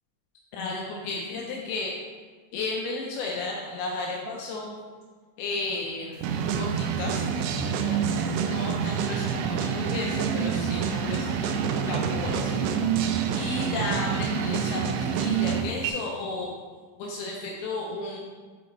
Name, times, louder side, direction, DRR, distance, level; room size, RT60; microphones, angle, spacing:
voice 1, 0.5-1.9 2.5-4.8 5.4-6.3 6.6-12.7 13.3-16.6 17.0-18.2, left 3 dB, 85° left, -1 dB, 2.2 m, -34 dB
sound 1, 6.2-15.9, right 7 dB, 90° right, 2.9 m, -27 dB
8.7 x 3.9 x 3.3 m, 1.5 s
omnidirectional pair, 5.2 m